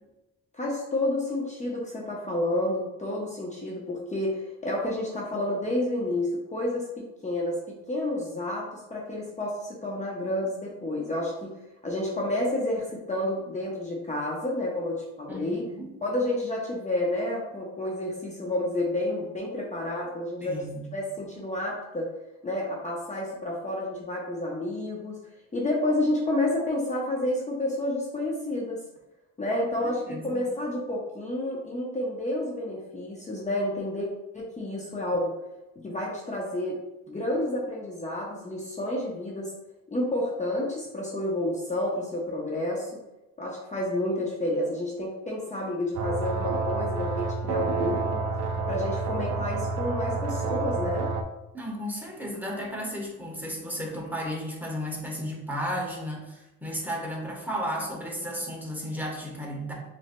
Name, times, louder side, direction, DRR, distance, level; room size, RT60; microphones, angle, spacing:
voice 1, 0.5-11.6 11.8-15.6 16.0-20.6 20.9-22.1 22.4-25.2 25.5-28.8 29.4-34.1 34.3-35.3 35.8-36.8 37.1-39.5 39.9-42.9 43.4-48.3 48.7-51.1, left 1 dB, 25° left, -3 dB, 0.8 m, -30 dB
voice 2, 15.3-15.9 20.4-20.9 29.8-30.4 51.5-59.7, equal, 5° right, -2 dB, 1.1 m, -34 dB
sound 1, 45.9-51.2, right 4 dB, 60° right, 0.6 m, -29 dB
6.1 x 2.7 x 2.2 m, 0.98 s
cardioid pair, 90°, 30 cm